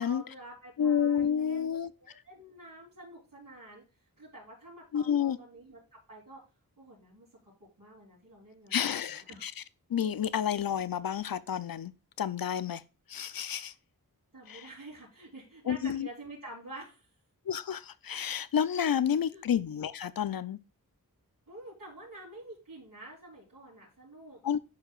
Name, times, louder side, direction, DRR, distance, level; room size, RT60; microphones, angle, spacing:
voice 1, 0.0-6.4 6.8-7.5 7.8-9.4 14.3-17.1 19.3-19.4 21.5-24.4, right 1 dB, 60° right, 4.0 m, -49 dB
voice 2, 0.8-1.9 4.9-5.4 8.7-9.6 9.9-11.9 12.2-12.8 13.1-13.7 14.5-14.7 15.7-16.1 17.5-20.6 24.4-24.6, left 8 dB, 70° left, 0.6 m, -30 dB
11.5 x 4.7 x 2.4 m
wide cardioid pair, 80°, 36 cm